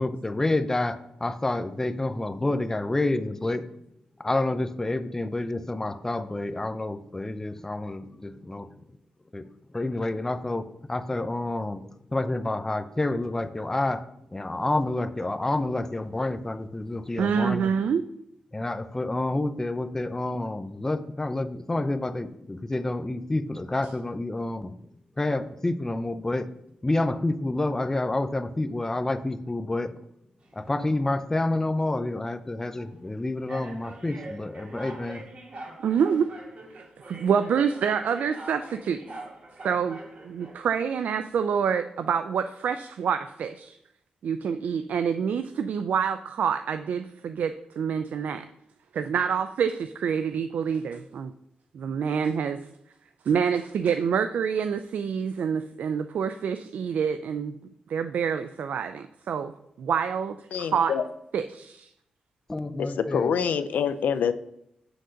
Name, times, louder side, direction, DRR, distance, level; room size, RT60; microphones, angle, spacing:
voice 1, 0.0-3.7 4.2-8.7 9.3-9.4 9.7-11.8 12.1-17.7 18.5-24.8 25.2-26.5 26.8-30.0 30.5-35.2 62.5-63.3, left 2 dB, 15° left, 10 dB, 0.5 m, -28 dB
voice 2, 17.2-18.0 35.8-36.3 36.7-39.0 39.6-43.8 44.2-48.5 48.9-51.3 51.7-52.6 53.3-57.5 57.9-59.5 59.8-60.9 61.3-61.9, right 7 dB, 75° right, 10 dB, 0.3 m, -27 dB
sound 1, 30.4-31.0 31.7-31.9 32.8-32.9 33.5-40.8, right 2 dB, 50° right, 2.0 m, -44 dB
voice 3, 60.5-61.0 62.8-64.3, left 7 dB, 80° left, 12 dB, 0.5 m, -26 dB
7.8 x 3.8 x 6.4 m, 0.78 s
cardioid pair, 85°, 3 cm